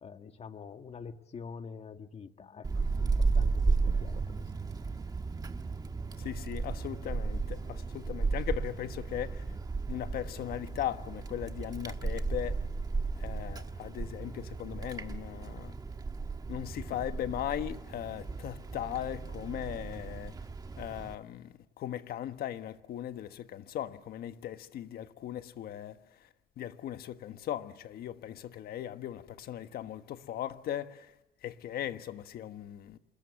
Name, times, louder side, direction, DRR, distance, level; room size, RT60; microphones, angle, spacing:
voice 1, 0.0-4.4, left 5 dB, 40° left, 1.8 m, -46 dB
Wind, 2.6-21.2, right 4 dB, 20° right, 1.5 m, -34 dB
voice 2, 6.2-9.4 9.9-12.6 13.2-15.7 16.5-20.3 20.8-26.0 26.6-31.1 31.4-33.0, left 11 dB, 65° left, 1.4 m, -38 dB
27.5 x 21.0 x 7.2 m
cardioid pair, 110°, 17 cm